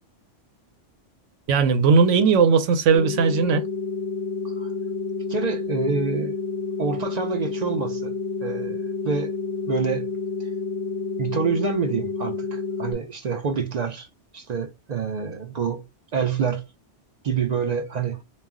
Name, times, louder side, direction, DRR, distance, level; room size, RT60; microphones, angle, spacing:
voice 1, 1.5-3.6, right 5 dB, 85° right, 0.9 m, -18 dB
sound 1, 2.9-12.9, left 4 dB, 65° left, 0.7 m, -29 dB
voice 2, 5.3-6.4 6.8-8.1 8.4-9.3 9.7-10.1 11.2-14.1 14.3-15.8 16.1-16.6 17.2-18.2, right 5 dB, 60° right, 0.4 m, -27 dB
2.3 x 2.1 x 3.5 m
omnidirectional pair, 1.2 m